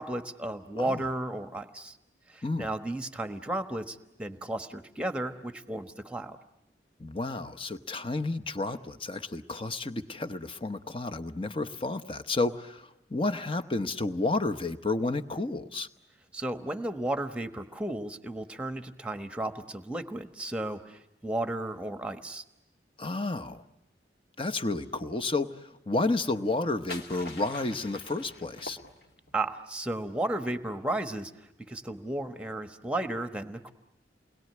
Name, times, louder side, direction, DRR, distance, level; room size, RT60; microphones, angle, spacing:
voice 1, 0.0-2.0 2.3-6.4 16.3-22.4 29.3-31.3 31.7-33.7, right 1 dB, 5° right, 9 dB, 1.2 m, -34 dB
voice 2, 7.0-15.9 23.0-23.6 24.4-25.6 25.9-28.8, left 2 dB, 30° left, 10 dB, 1.0 m, -31 dB
sound 1, 26.4-29.4, left 2 dB, 60° left, 2.4 m, -44 dB
29.5 x 21.5 x 9.5 m, 0.92 s
head